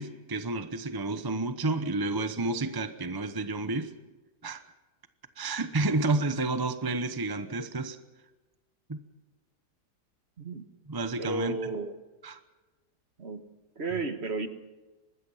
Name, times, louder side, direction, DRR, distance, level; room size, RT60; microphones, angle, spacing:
voice 1, 0.0-3.9 4.4-4.6 5.4-8.0 8.9-9.0 10.9-11.6 12.2-12.4, right 2 dB, 20° right, 10 dB, 0.6 m, -30 dB
voice 2, 11.2-11.9 13.2-13.5 13.8-14.5, right 3 dB, 40° right, 8 dB, 1.6 m, -33 dB
25.0 x 19.5 x 5.6 m, 1.2 s
omnidirectional pair, 1.9 m